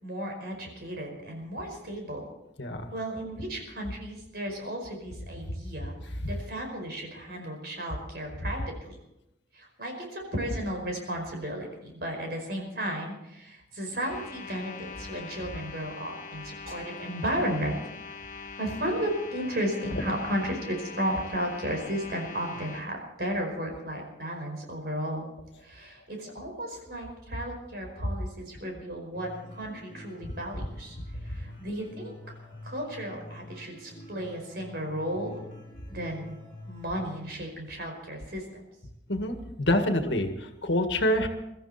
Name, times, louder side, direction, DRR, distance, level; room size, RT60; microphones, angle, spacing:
voice 1, 0.0-2.2 2.9-9.0 9.5-17.8 18.6-25.3 25.6-29.3 29.5-31.0 31.2-32.1 32.6-35.4 35.9-36.3 36.7-38.6, equal, 55° right, 2 dB, 5.1 m, -34 dB
sound 1, 14.0-22.8, left 5 dB, 45° left, 1.1 m, -43 dB
sound 2, 29.1-37.1, left 1 dB, 25° left, 7.3 m, -47 dB
voice 2, 39.1-41.3, left 1 dB, 75° left, 6 dB, 1.9 m, -26 dB
23.0 x 14.0 x 4.3 m, 0.89 s
head